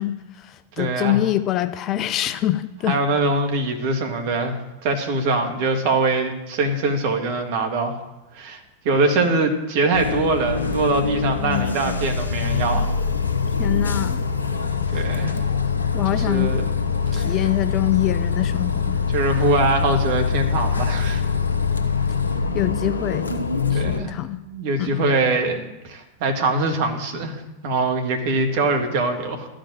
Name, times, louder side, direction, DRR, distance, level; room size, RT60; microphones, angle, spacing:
voice 1, 0.0-3.0 13.6-14.2 15.9-16.5 17.1-19.0 22.5-23.3 23.7-24.4 24.8-25.0, left 14 dB, 35° left, 13 dB, 0.5 m, -24 dB
voice 2, 0.8-1.2 2.9-4.6 4.8-8.0 8.3-12.9 14.9-15.4 16.1-16.7 17.1-17.3 19.1-21.2 23.7-24.2 24.4-29.5, right 3 dB, 50° right, 5 dB, 1.8 m, -23 dB
Bus, 9.9-24.0, left 5 dB, 75° left, 1.0 m, -23 dB
12.5 x 5.1 x 9.0 m, 1.0 s
figure-of-eight pair, 90°, 0 cm